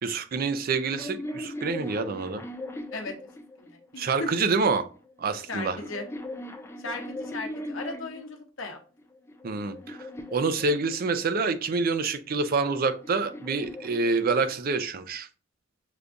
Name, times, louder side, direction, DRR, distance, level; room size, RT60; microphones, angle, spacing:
voice 1, 0.0-2.4 4.0-4.9 5.2-5.8 9.4-10.0 10.3-15.3, right 4 dB, 50° right, 0.4 m, -27 dB
sound 1, 0.6-4.0 4.9-8.3 9.0-11.4 12.4-14.9, left 1 dB, 15° left, 0.5 m, -40 dB
voice 2, 3.6-4.4 5.5-6.1 6.8-8.8, left 2 dB, 75° left, 0.8 m, -36 dB
6.6 x 2.3 x 2.5 m
head